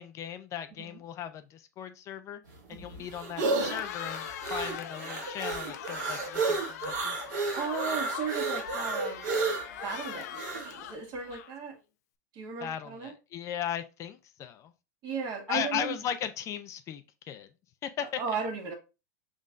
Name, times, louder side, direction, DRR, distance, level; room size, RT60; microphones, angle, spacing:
voice 1, 0.0-2.4 2.7-7.1 12.6-14.7 15.5-17.0 17.3-17.5 17.8-18.2, left 9 dB, 35° left, 9 dB, 0.4 m, -37 dB
sound 1, 2.5-10.7, right 3 dB, 80° right, 1.6 m, -32 dB
voice 2, 2.7-3.1 7.6-9.4 9.8-11.7 12.3-13.1 15.0-15.9 18.0-18.7, right 5 dB, 45° right, 3 dB, 1.6 m, -36 dB
Cheering, 3.5-11.8, left 10 dB, 65° left, 0.7 m, -42 dB
5.2 x 3.7 x 2.5 m, 0.28 s
hypercardioid pair, 120°, 9 cm